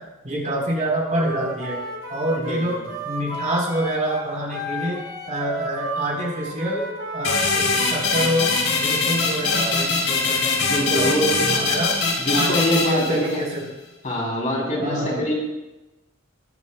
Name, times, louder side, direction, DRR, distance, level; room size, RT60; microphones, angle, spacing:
voice 1, 0.2-1.8 2.1-2.8 3.0-6.9 7.1-11.9 12.3-13.7 14.8-15.2, right 1 dB, 40° right, -2 dB, 4.0 m, -26 dB
Wind instrument woodwind instrument, 1.1-7.9, right 1 dB, 90° right, 3.4 m, -32 dB
sound 1, 7.2-13.6, left 3 dB, 80° left, 3.5 m, -22 dB
voice 2, 10.6-11.7 12.2-13.4 14.0-15.3, equal, 40° left, -3 dB, 3.3 m, -24 dB
22.0 x 10.5 x 2.3 m, 1.0 s
head